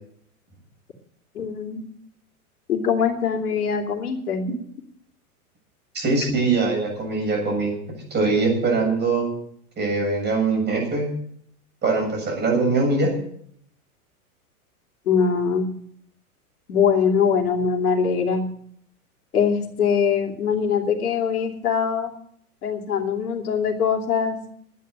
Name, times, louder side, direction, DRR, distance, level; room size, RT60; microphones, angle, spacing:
voice 1, 1.3-1.8 2.7-4.4 15.1-15.7 16.7-18.4 19.3-22.1 22.6-24.4, left 6 dB, 80° left, 3 dB, 2.9 m, -22 dB
voice 2, 5.9-9.3 9.8-11.1 11.8-13.1, right 3 dB, 25° right, 1 dB, 7.4 m, -22 dB
11.0 x 9.4 x 9.2 m, 0.64 s
hypercardioid pair, 125°, 44 cm